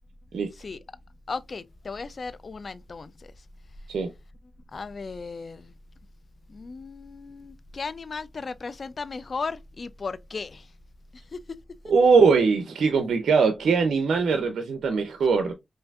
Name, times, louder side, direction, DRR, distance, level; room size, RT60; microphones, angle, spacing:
voice 1, 1.3-3.3 4.7-5.7 6.5-10.7 11.1-11.4, left 4 dB, 60° left, 0.4 m, -36 dB
voice 2, 11.9-15.5, right 5 dB, 90° right, 0.5 m, -21 dB
5.6 x 2.5 x 2.4 m
cardioid pair, 45°, 0 cm